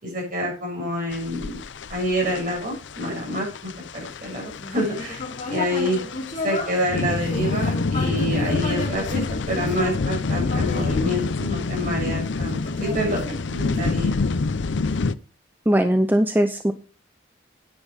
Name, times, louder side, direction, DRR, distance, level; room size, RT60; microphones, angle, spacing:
voice 1, 0.0-1.6 1.9-5.2 5.5-6.0 6.4-14.1, equal, 45° right, -1 dB, 6.6 m, -27 dB
sound 1, 1.1-15.1, left 3 dB, 70° left, 0.6 m, -27 dB
Human voice, 4.6-11.9 12.5-14.0, left 2 dB, 40° left, 3.0 m, -33 dB
voice 2, 15.7-16.7, equal, 10° right, 8 dB, 0.6 m, -19 dB
10.0 x 9.5 x 4.8 m, 0.36 s
head